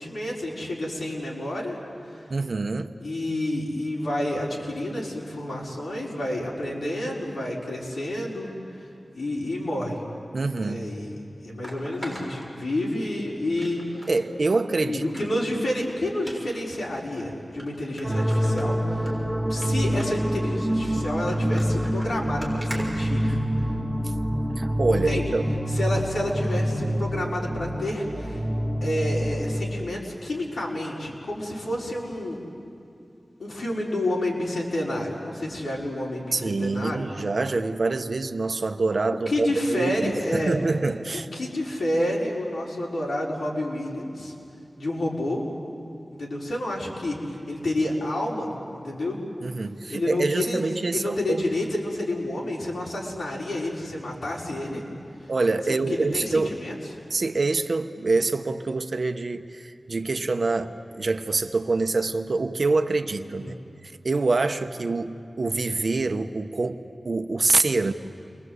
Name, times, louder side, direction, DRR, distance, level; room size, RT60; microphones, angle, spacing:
voice 1, 0.0-1.8 3.0-8.5 9.2-10.0 10.6-11.2 11.4-13.8 14.8-19.1 19.5-23.4 24.9-25.3 25.7-28.4 28.8-32.4 33.4-37.1 39.3-40.6 41.1-44.3 44.8-45.4 46.1-49.2 49.9-50.6 50.9-54.8 55.7-56.7 63.2-63.6, left 1 dB, 85° left, -4 dB, 5.6 m, -29 dB
voice 2, 2.3-2.9 10.3-10.9 14.1-15.0 24.6-25.4 36.3-41.3 49.4-51.4 55.3-56.5 57.1-63.6 63.8-67.9, right 3 dB, 65° right, 8 dB, 1.1 m, -25 dB
sound 1, 11.6-13.1 13.6-14.1 14.5-14.6 15.0-15.5 16.2-16.4 17.1-17.2 17.6-17.7 18.0-19.1 19.5-19.7 20.0-20.3 21.0-23.7 24.5-24.7 25.2-25.3, equal, 15° left, 6.6 m, -41 dB
sound 2, 18.0-29.6, equal, ahead, 3.5 m, -26 dB
29.5 x 23.5 x 8.2 m, 2.7 s
wide cardioid pair, 90°, 0 cm